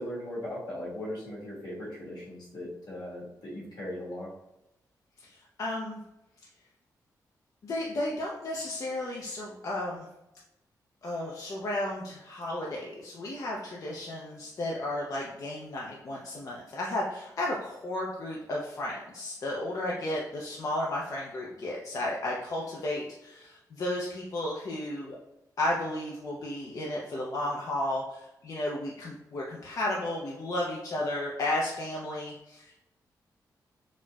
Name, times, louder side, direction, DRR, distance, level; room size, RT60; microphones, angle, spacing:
voice 1, 0.0-4.3, left 1 dB, 80° left, -6 dB, 1.4 m, -38 dB
voice 2, 5.2-6.0 7.6-10.1 11.0-25.2 25.6-32.8, left 1 dB, 50° left, -3 dB, 0.4 m, -33 dB
4.1 x 2.1 x 2.2 m, 0.89 s
wide cardioid pair, 110°, 7 cm